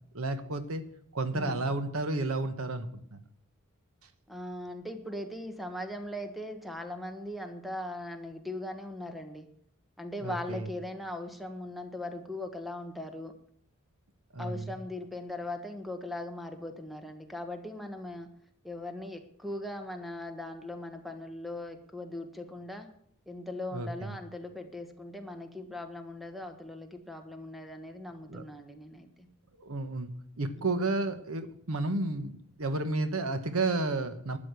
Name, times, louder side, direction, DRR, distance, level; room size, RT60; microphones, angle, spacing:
voice 1, 0.1-0.8 1.1-3.2 10.2-10.7 14.3-14.7 23.7-24.2 28.3-28.4 29.6-34.4, right 2 dB, 75° right, 11 dB, 1.2 m, -32 dB
voice 2, 1.3-1.6 4.3-9.5 10.0-13.3 14.4-18.3 18.6-22.9 23.3-29.3 30.6-30.8, left 1 dB, ahead, 7 dB, 1.3 m, -39 dB
12.5 x 8.5 x 8.2 m, 0.65 s
head